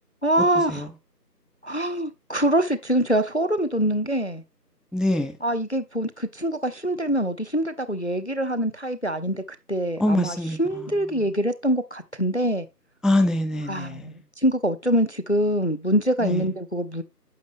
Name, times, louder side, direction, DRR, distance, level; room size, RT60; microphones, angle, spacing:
voice 1, 0.2-0.8 1.6-4.4 5.4-9.4 9.7-12.7 13.7-17.0, right 1 dB, 45° left, 0.5 m, -24 dB
voice 2, 4.9-5.3 10.0-10.9 13.0-14.1 16.2-16.4, left 1 dB, ahead, 0.5 m, -24 dB
9.5 x 6.2 x 2.9 m
figure-of-eight pair, 170°, 48 cm